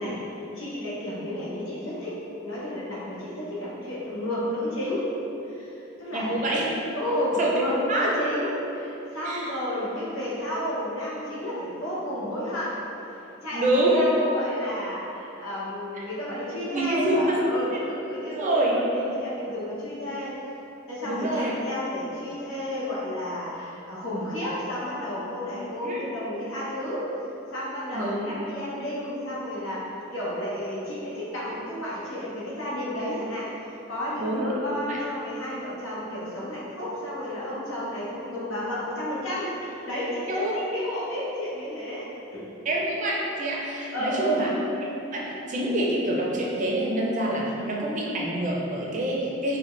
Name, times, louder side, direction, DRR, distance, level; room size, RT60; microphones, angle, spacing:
voice 1, 0.0-5.1 5.4-6.5 7.0-12.8 13.4-20.3 20.9-27.1 27.5-42.6 43.9-44.5, equal, 80° left, -7 dB, 1.0 m, -32 dB
voice 2, 6.1-6.6 7.4-7.6 7.9-8.1 9.2-9.5 13.5-14.1 16.0-16.1 16.7-17.8 18.3-18.8 21.0-21.5 25.8-26.0 27.9-28.3 34.2-34.5 34.9-35.0 40.3-40.8 42.6-44.5 44.8-49.6, right 1 dB, 40° right, -3 dB, 0.5 m, -26 dB
4.2 x 2.2 x 3.1 m, 2.9 s
head